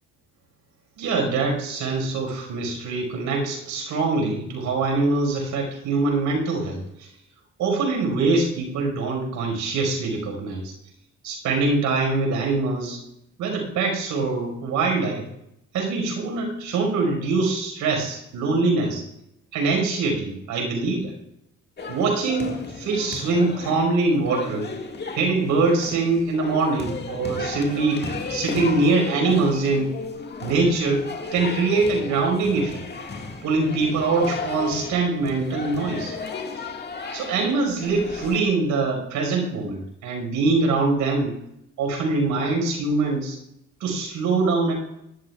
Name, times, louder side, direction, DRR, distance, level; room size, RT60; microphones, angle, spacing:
voice 1, 1.0-6.8 7.6-10.6 11.2-13.0 13.4-15.2 15.7-19.0 19.5-21.1 21.9-24.7 25.2-28.0 28.3-29.9 30.4-32.8 33.4-36.1 37.1-41.4 41.8-43.4 43.8-44.7, right 3 dB, 90° right, 2 dB, 5.3 m, -23 dB
sound 1, 21.8-38.4, left 4 dB, 35° left, 2.0 m, -34 dB
19.5 x 12.5 x 2.4 m, 0.78 s
cardioid pair, 90°, 30 cm